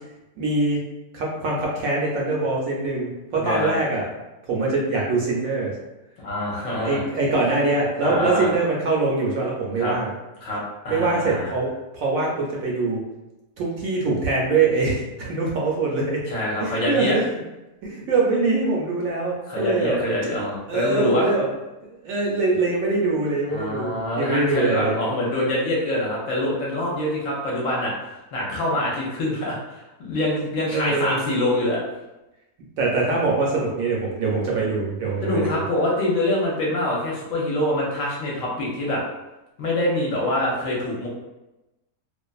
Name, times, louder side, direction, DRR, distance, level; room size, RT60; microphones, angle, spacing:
voice 1, 0.4-0.8 1.1-4.1 4.5-5.7 6.8-10.1 10.9-13.0 13.6-16.2 16.6-17.3 17.8-20.0 20.7-21.5 22.0-25.0 30.7-31.3 32.8-35.6, right 3 dB, 70° right, -3 dB, 0.9 m, -23 dB
voice 2, 3.4-3.7 6.2-7.0 8.0-8.5 9.8-9.9 10.4-11.5 16.3-17.2 19.5-21.3 23.5-27.9 28.3-31.8 35.2-39.0 39.6-41.1, left 1 dB, 65° left, -4 dB, 1.0 m, -25 dB
2.5 x 2.3 x 2.3 m, 1.0 s
omnidirectional pair, 1.6 m